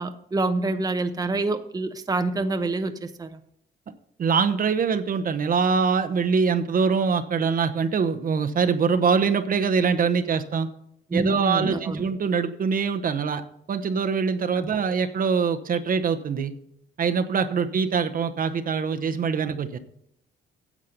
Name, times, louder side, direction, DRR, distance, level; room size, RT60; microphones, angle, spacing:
voice 1, 0.0-3.3 11.1-12.0 14.5-14.7, right 2 dB, 20° right, 8 dB, 0.8 m, -26 dB
voice 2, 4.2-10.7 11.1-13.4 13.7-16.5 17.0-19.8, right 5 dB, 50° right, 8 dB, 0.9 m, -23 dB
10.0 x 7.3 x 5.2 m, 0.73 s
cardioid pair, 85°, 19 cm